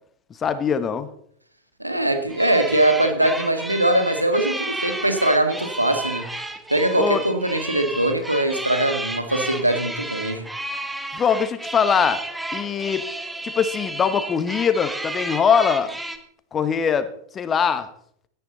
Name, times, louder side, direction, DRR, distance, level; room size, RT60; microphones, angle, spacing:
voice 1, 0.4-1.1 7.0-7.2 11.1-12.2 12.5-13.1 13.4-15.9 16.5-17.9, left 7 dB, 25° left, 12 dB, 1.2 m, -22 dB
voice 2, 1.8-6.3 6.7-10.5, right 1 dB, 85° right, 7 dB, 2.0 m, -21 dB
sound 1, 2.3-16.2, right 1 dB, 5° right, 1.5 m, -32 dB
17.0 x 12.5 x 4.0 m, 0.66 s
figure-of-eight pair, 90°, 0 cm